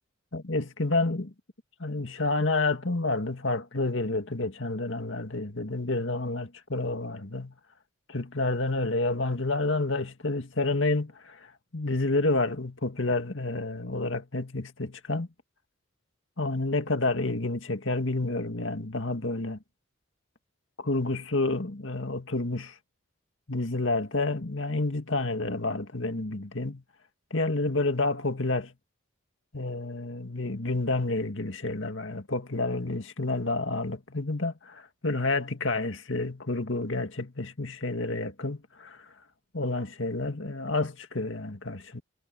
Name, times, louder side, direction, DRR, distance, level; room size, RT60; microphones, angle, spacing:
voice 1, 0.3-1.3 1.8-7.5 8.1-15.3 16.4-19.6 20.8-22.8 23.5-26.8 27.3-28.7 29.5-39.1 39.5-42.0, left 2 dB, 65° left, 2.0 m, -29 dB
head